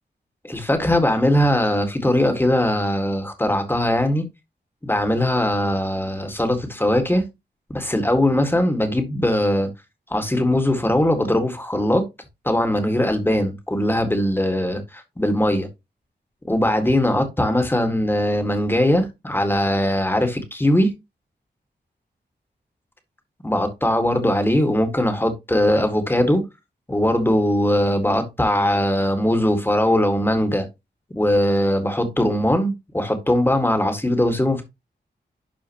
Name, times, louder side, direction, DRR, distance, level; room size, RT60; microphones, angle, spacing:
voice 1, 0.4-4.3 4.8-7.2 7.7-9.7 10.1-12.0 12.4-15.7 16.5-20.9 23.4-26.4 26.9-30.7 31.1-34.6, left 1 dB, 10° left, 1.8 m, -20 dB
11.5 x 4.5 x 3.0 m
wide cardioid pair, 95°, 18 cm